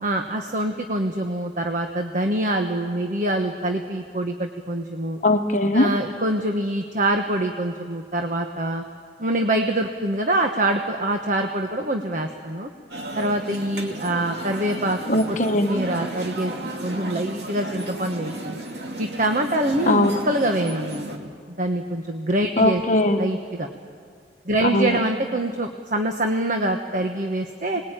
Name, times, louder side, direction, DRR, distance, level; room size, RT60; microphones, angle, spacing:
voice 1, 0.0-5.2 5.7-8.8 9.2-12.7 13.2-15.0 15.3-15.4 15.6-18.6 19.0-22.8 23.2-23.7 24.4-27.8, right 1 dB, 45° right, 4 dB, 1.3 m, -25 dB
voice 2, 5.2-5.9 15.1-15.7 19.9-20.2 22.6-23.2 24.6-25.0, left 1 dB, 40° left, 5 dB, 1.2 m, -20 dB
sound 1, 12.9-21.2, right 1 dB, 65° right, 2.5 m, -33 dB
26.0 x 20.5 x 9.1 m, 2.1 s
head